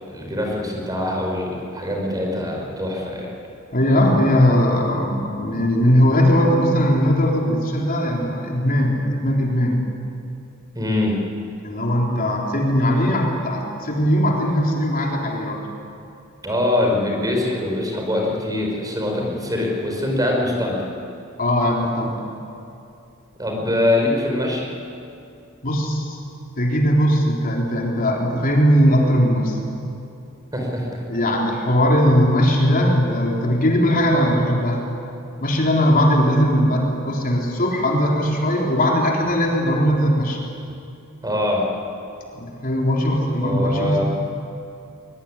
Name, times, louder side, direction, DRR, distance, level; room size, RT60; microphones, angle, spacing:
voice 1, 0.1-3.3 10.7-11.2 16.4-20.9 23.4-24.7 30.5-31.2 41.2-41.7 43.4-44.0, left 1 dB, 20° right, 0 dB, 5.0 m, -23 dB
voice 2, 3.7-9.8 11.6-15.6 19.2-19.3 21.4-22.3 25.6-26.2 26.6-29.6 31.1-34.8 35.4-40.4 42.4-44.0, equal, 45° left, -1 dB, 3.8 m, -19 dB
23.0 x 22.5 x 10.0 m, 2.6 s
head